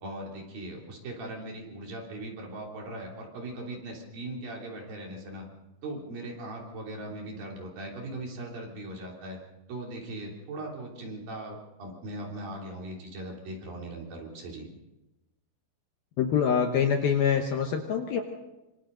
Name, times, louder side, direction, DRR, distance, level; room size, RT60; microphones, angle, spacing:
voice 1, 0.0-5.4 5.8-9.4 9.7-14.7, right 1 dB, 50° right, -1 dB, 4.7 m, -39 dB
voice 2, 16.2-18.2, left 7 dB, 70° left, 4 dB, 2.5 m, -25 dB
26.0 x 26.0 x 3.9 m, 1.0 s
omnidirectional pair, 5.5 m